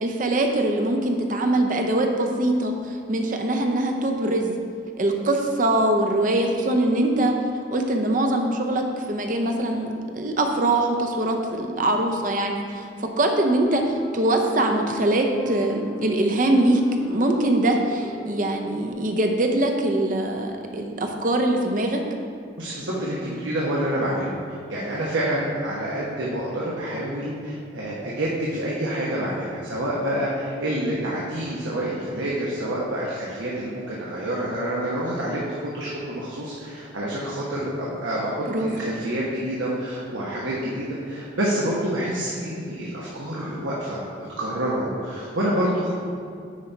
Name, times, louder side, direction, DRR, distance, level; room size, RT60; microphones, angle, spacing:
voice 1, 0.0-4.6 5.0-7.3 7.7-16.8 17.1-22.0 38.5-38.7, right 1 dB, 45° right, 3 dB, 0.6 m, -23 dB
sound 1, 13.6-18.9, equal, ahead, 0.8 m, -37 dB
voice 2, 22.6-24.3 24.7-35.4 35.7-45.9, right 1 dB, 90° right, -5 dB, 1.1 m, -27 dB
9.6 x 4.1 x 4.5 m, 2.3 s
head